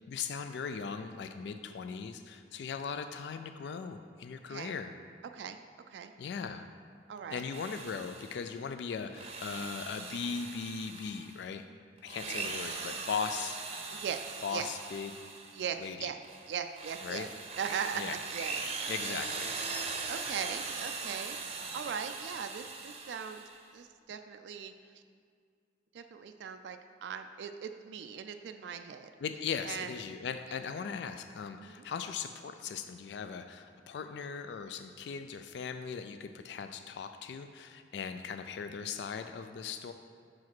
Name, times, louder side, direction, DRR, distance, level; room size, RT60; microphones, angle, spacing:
voice 1, 0.0-5.0 6.2-6.7 7.3-11.7 12.0-13.6 14.4-15.1 15.8-16.1 17.0-17.3 18.0-18.2 18.9-19.6 29.2-39.9, left 6 dB, 65° left, 8 dB, 0.3 m, -39 dB
voice 2, 7.1-7.4 12.2-12.5 13.9-14.7 15.5-16.2 16.5-17.3 17.6-18.6 19.0-19.3 19.8-23.4 23.7-25.0 25.9-29.1 29.6-29.9 31.6-31.8, right 7 dB, 70° right, 7 dB, 0.3 m, -39 dB
Drill, 7.4-8.5 9.0-11.4 12.0-15.7 16.2-23.6, right 4 dB, 35° right, 0.6 m, -40 dB
6.1 x 4.8 x 6.0 m, 2.1 s
head